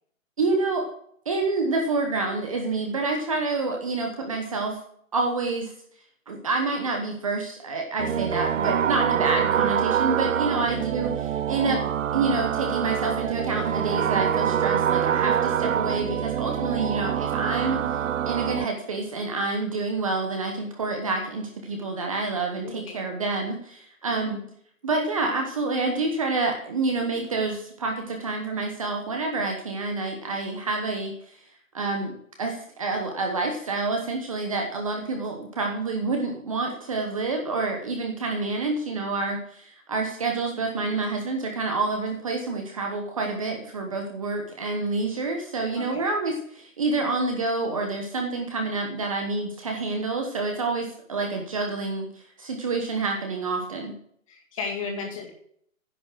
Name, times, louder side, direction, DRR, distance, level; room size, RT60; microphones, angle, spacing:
voice 1, 0.4-0.9 1.3-4.8 5.1-5.7 6.3-11.8 12.1-24.4 24.8-31.4 31.7-53.9 54.9-55.0, right 3 dB, 25° right, 2 dB, 1.0 m, -28 dB
sound 1, 8.0-18.6, right 9 dB, 65° right, 0.6 m, -25 dB
voice 2, 22.5-23.0 24.1-24.3 27.1-27.3 45.8-46.1 54.3-55.3, left 5 dB, 25° left, 0 dB, 2.2 m, -35 dB
10.0 x 7.1 x 6.1 m, 0.65 s
hypercardioid pair, 170°, 41 cm